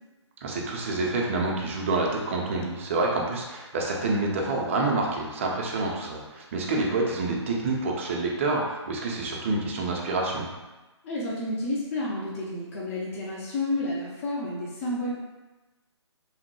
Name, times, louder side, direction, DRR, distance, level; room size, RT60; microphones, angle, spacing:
voice 1, 0.4-10.5, right 2 dB, 25° right, -1 dB, 0.4 m, -27 dB
voice 2, 11.0-15.2, left 1 dB, 30° left, -5 dB, 0.5 m, -30 dB
3.0 x 2.1 x 2.9 m, 1.1 s
figure-of-eight pair, 135°, 15 cm